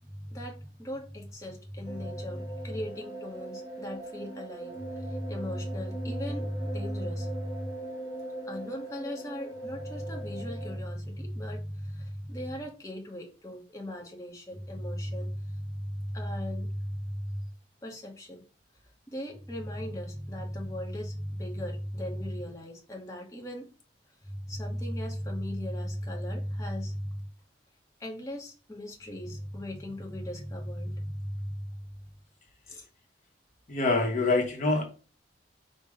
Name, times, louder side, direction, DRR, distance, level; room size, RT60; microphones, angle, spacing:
voice 1, 0.0-7.7 8.5-17.5 17.8-18.4 19.1-23.7 24.2-27.3 28.0-32.0 32.7-32.9, equal, 20° left, -1 dB, 1.0 m, -36 dB
sound 1, 1.9-10.7, right 2 dB, 20° right, 1.9 m, -41 dB
voice 2, 33.7-34.8, left 3 dB, 45° left, 2 dB, 0.9 m, -25 dB
5.0 x 2.1 x 4.9 m, 0.34 s
head